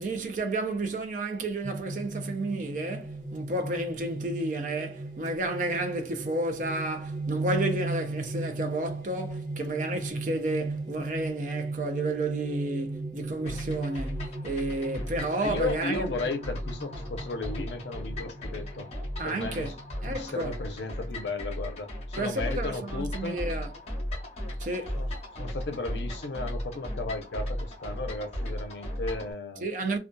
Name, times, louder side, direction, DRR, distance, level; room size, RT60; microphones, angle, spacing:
voice 1, 0.0-16.1 19.2-19.8 20.0-20.5 22.2-23.7 24.6-25.1 29.6-30.0, right 2 dB, 45° right, 0.4 m, -31 dB
sound 1, 1.6-20.8, right 3 dB, 25° right, 0.8 m, -37 dB
sound 2, 13.5-29.3, equal, 35° left, 0.9 m, -36 dB
voice 2, 15.4-18.9 19.2-19.7 20.1-23.4 25.0-29.7, left 3 dB, 80° left, 0.5 m, -35 dB
2.6 x 2.3 x 2.2 m
head